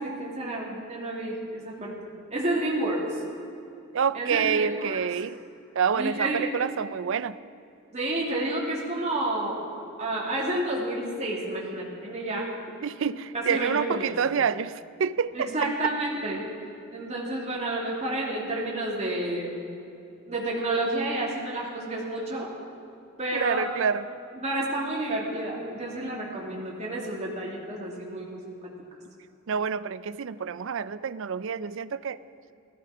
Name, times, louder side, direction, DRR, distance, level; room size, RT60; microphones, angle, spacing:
voice 1, 0.0-2.0 2.3-3.2 4.1-5.0 5.9-6.5 7.9-9.6 10.0-12.5 13.3-14.1 15.3-16.4 16.9-19.5 20.3-22.5 23.2-23.7 24.4-28.6, right 1 dB, 30° right, -3 dB, 2.7 m, -30 dB
voice 2, 3.9-5.4 5.7-7.4 12.8-15.5 23.3-24.1 29.5-32.2, right 6 dB, 60° right, 16 dB, 0.4 m, -27 dB
16.5 x 14.0 x 5.0 m, 2.7 s
head